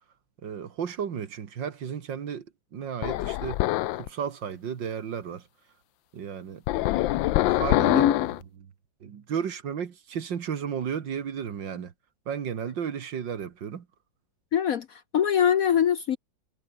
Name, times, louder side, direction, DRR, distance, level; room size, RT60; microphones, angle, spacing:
voice 1, 0.4-2.5 2.7-3.6 3.9-5.5 6.1-6.6 7.5-8.1 8.6-8.7 9.0-11.9 12.3-13.9, right 7 dB, 70° right, 2.3 m, -33 dB
sound 1, 3.0-4.1 6.7-8.4, left 16 dB, 80° left, 1.3 m, -24 dB
voice 2, 14.5-16.2, left 9 dB, 60° left, 1.0 m, -23 dB
omnidirectional pair, 2.1 m